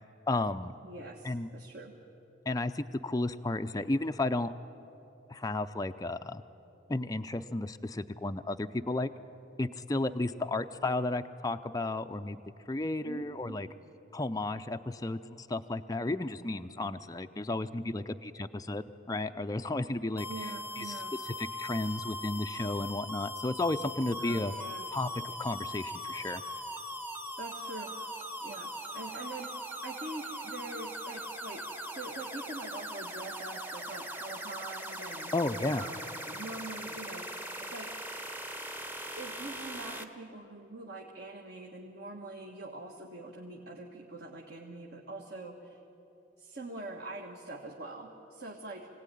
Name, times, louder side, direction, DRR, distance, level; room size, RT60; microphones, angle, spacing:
voice 1, 0.3-0.7 1.2-1.5 2.5-4.5 5.3-6.4 6.9-9.1 9.6-12.4 12.7-13.7 14.1-24.5 24.9-26.4 35.3-35.8, left 2 dB, 20° left, 7 dB, 0.5 m, -33 dB
voice 2, 0.8-2.0 10.2-10.3 13.0-13.6 20.3-21.1 24.2-24.9 27.4-27.9 28.4-29.5 29.8-35.3 35.7-38.0 39.1-45.8 46.4-48.9, right 2 dB, 55° right, 0 dB, 1.6 m, -44 dB
sound 1, 20.2-40.0, equal, 10° right, 1.0 m, -40 dB
24.5 x 17.5 x 10.0 m, 3.0 s
head